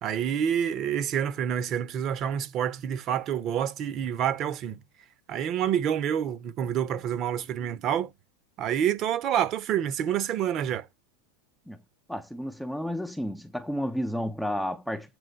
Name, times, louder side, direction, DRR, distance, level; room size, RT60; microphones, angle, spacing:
voice 1, 0.0-4.8 5.3-8.1 8.6-10.9, right 9 dB, 35° right, 0.9 m, -28 dB
voice 2, 12.1-15.2, equal, ahead, 0.6 m, -32 dB
8.0 x 3.6 x 6.5 m
supercardioid pair, 150°, 0 cm